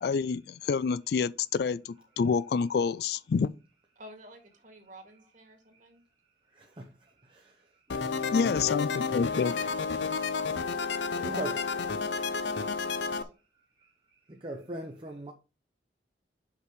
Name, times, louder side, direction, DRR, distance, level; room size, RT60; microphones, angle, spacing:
voice 1, 0.0-3.5 8.3-9.7, left 5 dB, 60° left, 0.3 m, -28 dB
voice 2, 4.0-6.0 9.6-9.7 11.1-11.4 12.1-13.3, right 1 dB, 45° right, 2.1 m, -50 dB
voice 3, 6.5-6.9 7.2-7.5 10.9-11.6 14.3-15.3, right 1 dB, 30° right, 0.8 m, -40 dB
sound 1, 7.9-13.2, left 5 dB, 85° left, 0.7 m, -31 dB
6.0 x 5.8 x 4.7 m
head